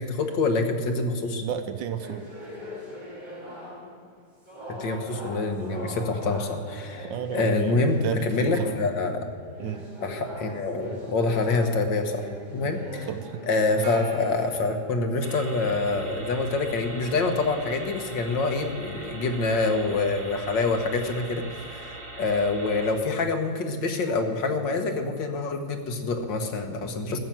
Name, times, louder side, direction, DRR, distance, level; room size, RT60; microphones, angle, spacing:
voice 1, 0.0-1.4 4.8-7.1 7.3-9.3 10.0-12.3 12.5-13.1 13.4-27.2, left 3 dB, 75° left, 5 dB, 1.9 m, -26 dB
voice 2, 1.4-2.3 7.1-8.7 9.6-9.9 12.6-13.4, right 9 dB, 80° right, 9 dB, 1.4 m, -32 dB
sound 1, 2.0-4.1 4.5-9.0 9.4-14.9, left 1 dB, 25° right, 2.6 m, -41 dB
Gong, 13.8-15.9, right 4 dB, 60° right, 1.5 m, -45 dB
sound 2, 15.2-22.9, right 2 dB, 40° right, 2.9 m, -41 dB
14.0 x 7.4 x 9.0 m, 2.3 s
omnidirectional pair, 2.0 m